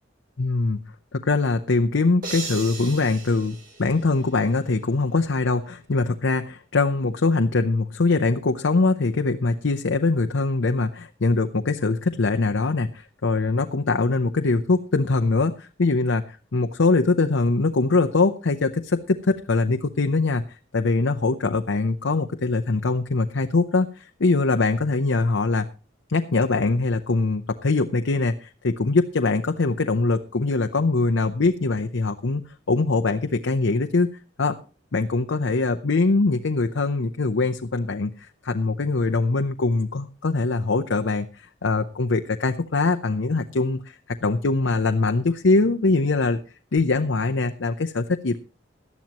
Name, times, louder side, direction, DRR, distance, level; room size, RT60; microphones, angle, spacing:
voice 1, 0.4-0.8 1.1-20.4 20.7-25.7 26.1-32.4 32.7-34.1 34.4-34.6 34.9-46.4 46.7-48.4, left 3 dB, 90° left, 7 dB, 0.7 m, -22 dB
sound 1, 2.2-4.6, right 4 dB, 50° right, 3.7 m, -37 dB
18.0 x 12.0 x 3.0 m, 0.33 s
head